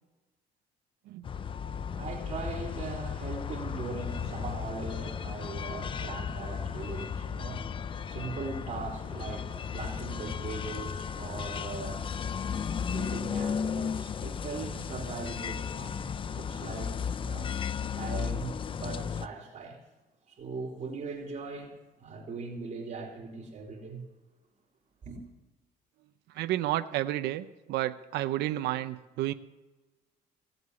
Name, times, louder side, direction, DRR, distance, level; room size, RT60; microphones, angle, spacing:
sound 1, 1.2-19.3, left 7 dB, 30° left, 0.4 m, -35 dB
voice 1, 1.3-17.0 17.2-17.5 18.0-19.8 20.3-24.0 25.0-25.2, right 4 dB, 40° right, 3.1 m, -40 dB
voice 2, 26.3-29.3, right 14 dB, 80° right, 0.7 m, -31 dB
17.5 x 8.0 x 9.6 m
cardioid pair, 110°, 17 cm